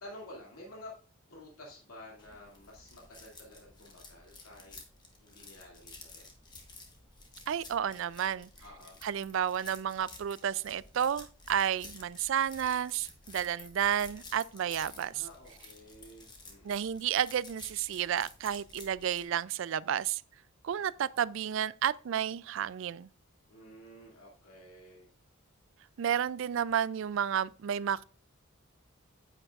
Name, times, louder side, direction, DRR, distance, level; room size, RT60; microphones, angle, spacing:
voice 1, 0.0-1.0 1.3-4.8 5.2-6.3 8.6-9.0 15.1-17.0 23.5-25.1, left 1 dB, 85° left, 2.4 m, -51 dB
sound 1, 2.2-19.2, left 3 dB, 20° left, 1.3 m, -52 dB
voice 2, 7.5-8.5 9.0-15.2 16.6-20.2 20.6-23.1 26.0-28.0, right 9 dB, 60° right, 0.3 m, -31 dB
9.8 x 8.7 x 2.4 m
head